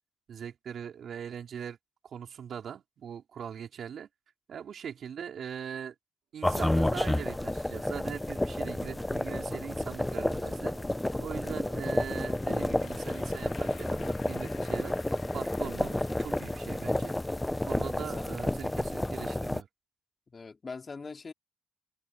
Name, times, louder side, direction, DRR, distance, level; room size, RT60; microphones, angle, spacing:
voice 1, 0.3-1.8 2.0-4.1 4.5-5.9 6.3-10.7 11.2-15.0 15.3-17.2 17.6-19.7, right 8 dB, 60° right, 4.5 m, -41 dB
sound 1, 6.4-19.6, left 1 dB, 10° left, 0.6 m, -31 dB
sound 2, 8.0-15.0, right 10 dB, 75° right, 4.1 m, -57 dB
voice 2, 11.5-11.8 20.3-21.3, left 4 dB, 35° left, 2.5 m, -42 dB
Applause / Crowd, 12.1-18.4, left 7 dB, 60° left, 2.1 m, -54 dB
cardioid pair, 90°, 0 cm